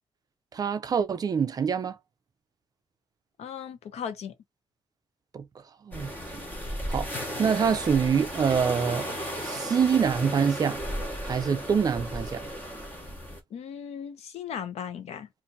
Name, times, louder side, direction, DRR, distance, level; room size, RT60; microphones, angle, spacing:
voice 1, 0.5-2.0 5.3-5.4 5.8-6.4 6.9-7.1 7.4-9.1 9.4-10.8 11.2-12.5, right 6 dB, 35° right, 0.4 m, -25 dB
voice 2, 3.4-4.3 13.5-15.3, left 8 dB, 85° left, 0.8 m, -37 dB
sound 1, 5.9-13.4, equal, 15° left, 1.0 m, -34 dB
2.7 x 2.5 x 3.9 m
wide cardioid pair, 175°, 11 cm